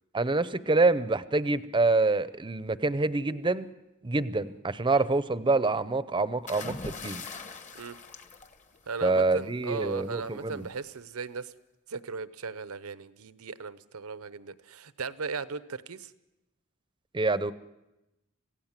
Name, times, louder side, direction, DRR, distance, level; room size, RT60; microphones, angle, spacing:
voice 1, 0.1-3.7 4.0-7.2 9.0-10.7 17.1-17.5, right 3 dB, 20° right, 15 dB, 0.7 m, -26 dB
sound 1, 6.5-9.2 10.5-10.8, left 3 dB, 35° left, 1.3 m, -41 dB
voice 2, 8.9-11.5 11.9-16.1, right 5 dB, 85° right, 15 dB, 0.9 m, -37 dB
26.5 x 16.5 x 7.4 m, 0.97 s
head